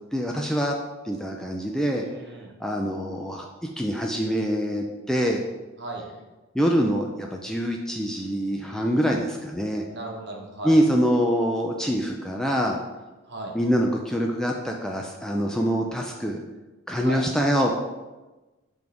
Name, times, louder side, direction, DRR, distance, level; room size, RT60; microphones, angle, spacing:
voice 1, 0.1-0.7 1.0-2.0 2.6-3.5 3.8-5.4 6.5-9.8 10.6-12.8 13.5-16.4 16.9-17.8, equal, 5° left, 0 dB, 0.3 m, -24 dB
voice 2, 1.9-2.5 5.8-6.0 9.9-10.7 13.3-13.5 17.0-17.2, right 2 dB, 55° right, 0 dB, 1.1 m, -36 dB
7.9 x 3.7 x 3.5 m, 1.1 s
head